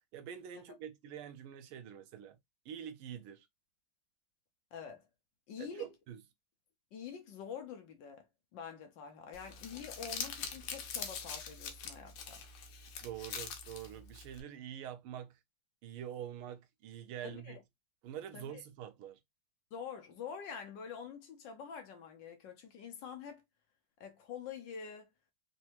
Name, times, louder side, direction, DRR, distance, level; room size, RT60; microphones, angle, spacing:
voice 1, 0.0-2.4 2.6-3.5 5.6-6.2 13.0-15.4 15.8-17.6 18.0-19.2, right 10 dB, 80° right, 1.5 m, -45 dB
voice 2, 4.7-5.1 5.5-5.9 6.9-8.2 8.5-12.4 17.2-17.6 18.3-18.6 19.7-23.4 24.0-25.1, left 7 dB, 65° left, 1.3 m, -46 dB
Crumpling crinkling, 9.3-14.4, left 6 dB, 85° left, 1.7 m, -43 dB
4.3 x 2.6 x 2.8 m
omnidirectional pair, 2.4 m